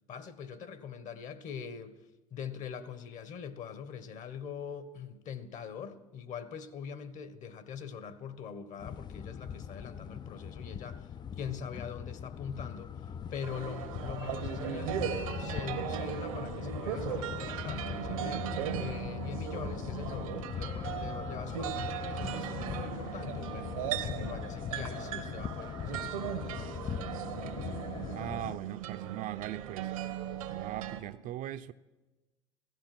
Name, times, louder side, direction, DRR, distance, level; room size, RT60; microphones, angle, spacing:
voice 1, 0.1-2.0 2.3-26.9, left 7 dB, 45° left, 1.5 m, -43 dB
sound 1, 8.8-28.6, left 8 dB, 25° left, 0.4 m, -40 dB
sound 2, 13.4-31.0, right 10 dB, 85° right, 1.3 m, -38 dB
voice 2, 28.1-29.9 30.5-31.7, right 13 dB, 50° right, 0.7 m, -39 dB
16.0 x 14.0 x 6.1 m
hypercardioid pair, 90°, 17 cm